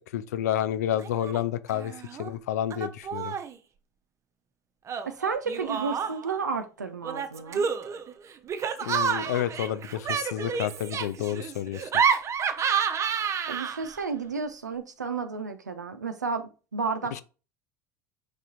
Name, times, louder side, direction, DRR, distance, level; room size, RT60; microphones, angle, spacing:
voice 1, 0.0-1.9 2.2-3.3 8.8-11.9 17.1-17.2, left 11 dB, 70° left, 0.3 m, -30 dB
Laughter, 1.0-1.4 1.7-2.3 2.7-3.6 4.9-6.4 7.0-14.0, right 7 dB, 35° right, 0.5 m, -29 dB
voice 2, 5.1-7.7 13.5-17.2, right 5 dB, 90° right, 0.4 m, -32 dB
4.8 x 3.3 x 2.8 m
figure-of-eight pair, 70°, 9 cm